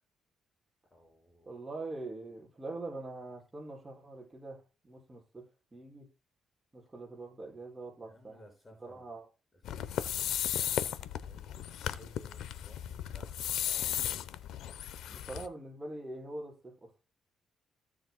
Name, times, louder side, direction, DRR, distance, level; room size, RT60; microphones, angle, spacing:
voice 1, 0.9-1.5 8.0-9.1 9.7-14.0, equal, 20° left, 5.7 m, -59 dB
voice 2, 1.5-5.5 5.7-6.1 6.7-8.4 8.8-9.3 15.1-16.9, right 2 dB, 20° right, 6.1 m, -43 dB
sound 1, 9.6-15.5, left 10 dB, 80° left, 0.8 m, -35 dB
16.5 x 7.0 x 2.2 m
cardioid pair, 90°, 0 cm